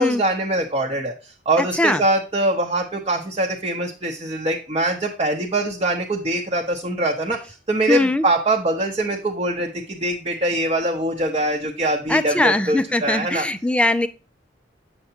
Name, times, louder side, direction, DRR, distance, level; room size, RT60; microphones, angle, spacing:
voice 1, 0.0-13.5, right 1 dB, 30° right, 0 dB, 0.8 m, -23 dB
voice 2, 1.6-2.0 7.9-8.3 12.1-14.1, left 1 dB, 5° left, 11 dB, 0.3 m, -21 dB
7.9 x 6.7 x 2.8 m, 0.33 s
head